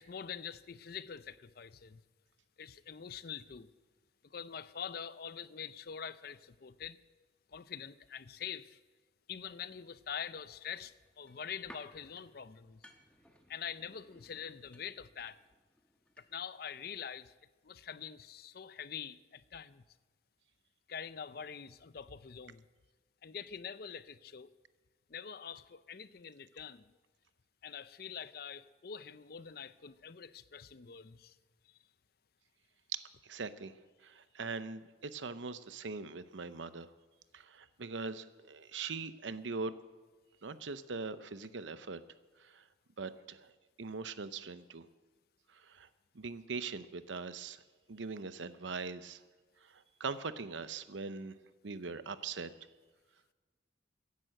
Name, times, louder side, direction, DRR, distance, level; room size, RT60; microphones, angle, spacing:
voice 1, 0.0-2.0 2.6-3.7 4.2-7.0 7.5-8.8 9.3-12.9 13.5-15.4 16.2-17.3 17.6-19.8 20.9-22.6 23.2-24.5 25.1-26.9 27.6-31.4 31.6-31.8, left 7 dB, 55° left, 0.5 m, -45 dB
sound 1, 10.7-16.6 16.8-16.9, equal, 5° left, 1.3 m, -60 dB
voice 2, 32.9-33.7 34.0-36.9 37.3-39.7 40.4-42.0 42.4-42.7 43.0-43.5 43.8-44.9 45.5-45.9 46.1-47.6 47.9-49.2 49.6-51.4 51.6-52.5, right 4 dB, 85° right, 0.8 m, -41 dB
16.0 x 10.5 x 7.7 m
head